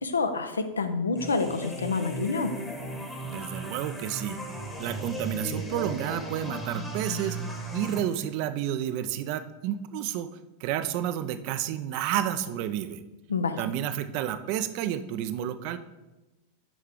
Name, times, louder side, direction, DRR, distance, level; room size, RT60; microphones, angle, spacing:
voice 1, 0.0-2.5 13.3-13.6, left 4 dB, 75° left, 8 dB, 0.6 m, -28 dB
sound 1, 1.2-8.0, right 1 dB, 10° left, 1.1 m, -36 dB
voice 2, 3.2-4.4 4.8-7.4 7.7-10.3 10.6-13.0 13.6-15.8, right 11 dB, 45° right, 11 dB, 0.4 m, -30 dB
6.1 x 5.5 x 3.7 m, 1.1 s
figure-of-eight pair, 90°, 0 cm